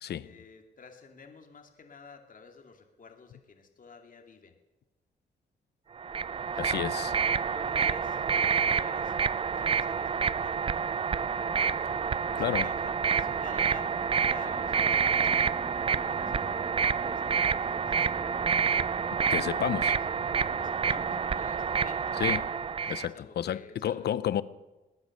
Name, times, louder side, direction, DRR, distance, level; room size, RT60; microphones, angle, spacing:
voice 1, 0.0-4.6 6.5-7.1 7.5-8.2 8.6-11.1 11.7-12.0 12.4-18.1 20.6-22.2 22.8-24.1, left 5 dB, 50° left, 2.5 m, -51 dB
sound 1, 6.0-23.1, right 6 dB, 30° right, 0.4 m, -28 dB
voice 2, 6.6-7.1 11.8-11.9 12.4-12.7 19.3-20.0 22.2-22.5 22.9-24.4, left 10 dB, 65° left, 0.7 m, -31 dB
sound 2, 11.3-21.5, right 1 dB, 10° right, 1.6 m, -46 dB
20.0 x 9.7 x 6.5 m
cardioid pair, 85°, 18 cm